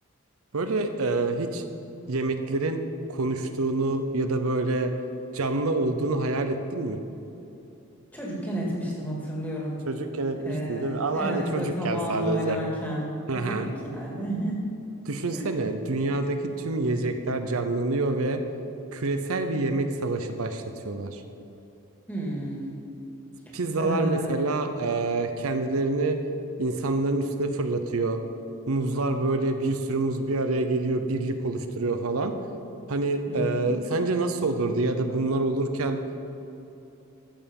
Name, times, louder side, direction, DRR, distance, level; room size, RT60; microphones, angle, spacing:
voice 1, 0.5-1.6 2.1-2.8 3.1-4.9 5.3-7.0 9.9-12.6 13.3-13.7 15.1-18.4 18.9-21.2 23.5-26.2 26.6-28.2 28.7-32.3 32.9-36.0, right 2 dB, 75° right, 7 dB, 0.7 m, -27 dB
voice 2, 8.1-9.8 10.4-13.1 13.3-14.6 15.3-15.5 22.1-22.7 23.5-24.3 33.3-33.8, equal, 5° left, -4 dB, 2.2 m, -31 dB
14.5 x 6.9 x 5.3 m, 2.8 s
head